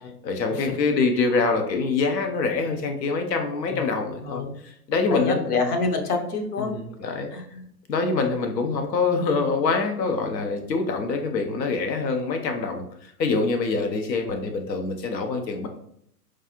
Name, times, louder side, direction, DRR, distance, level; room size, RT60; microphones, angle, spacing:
voice 1, 0.2-4.4 4.9-5.5 6.6-7.3 7.9-15.7, left 4 dB, 90° left, 5 dB, 0.7 m, -25 dB
voice 2, 5.1-6.7 7.3-7.7 13.4-13.5, left 4 dB, 65° left, 4 dB, 1.0 m, -27 dB
4.6 x 2.4 x 2.9 m, 0.71 s
hypercardioid pair, 115°, 49 cm